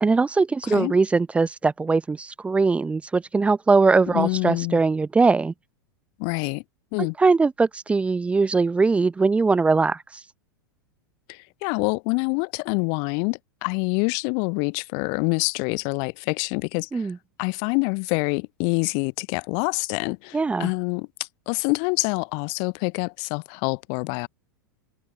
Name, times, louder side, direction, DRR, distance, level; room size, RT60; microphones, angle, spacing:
voice 1, 0.0-5.5 7.0-10.0 16.9-17.2 20.3-20.7, right 4 dB, 10° right, 0.9 m, -21 dB
voice 2, 0.6-1.0 4.1-4.8 6.2-6.6 6.9-7.1 11.3-17.1 17.4-21.1 21.5-24.3, left 40 dB or more, 40° left, 0.9 m, -26 dB
figure-of-eight pair, 90°, 11 cm